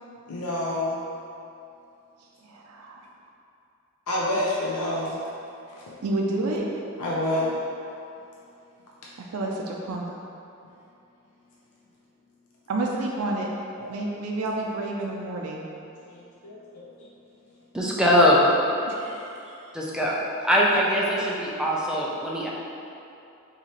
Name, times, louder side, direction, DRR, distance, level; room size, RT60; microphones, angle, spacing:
voice 1, 0.3-1.0 4.1-5.2 5.7-6.0 7.0-7.5 10.6-10.7 13.8-14.2 16.0-16.6 18.8-18.9 21.7-21.8, left 1 dB, 80° left, -5 dB, 0.5 m, -29 dB
voice 2, 6.0-6.6 9.3-10.2 12.7-13.5 13.9-15.6 18.9-19.6, right 2 dB, 85° right, -1 dB, 0.4 m, -29 dB
voice 3, 17.7-18.5 19.7-20.1 20.4-22.5, equal, 5° right, -4 dB, 0.4 m, -21 dB
4.9 x 2.8 x 2.9 m, 2.7 s
head